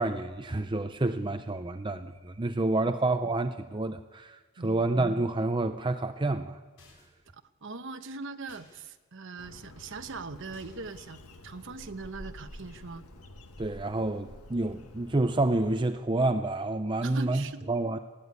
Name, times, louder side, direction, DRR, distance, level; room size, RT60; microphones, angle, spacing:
voice 1, 0.0-6.6 13.6-18.0, right 2 dB, 20° right, 8 dB, 0.6 m, -29 dB
voice 2, 4.6-4.9 7.3-13.0 17.0-17.7, right 3 dB, 55° right, 8 dB, 1.0 m, -41 dB
sound 1, 6.8-7.3 8.5-8.8 10.5-11.0, left 3 dB, 70° left, 5.5 m, -58 dB
Bird, 9.4-15.9, left 1 dB, 85° left, 1.7 m, -49 dB
20.5 x 15.0 x 9.6 m, 1.3 s
head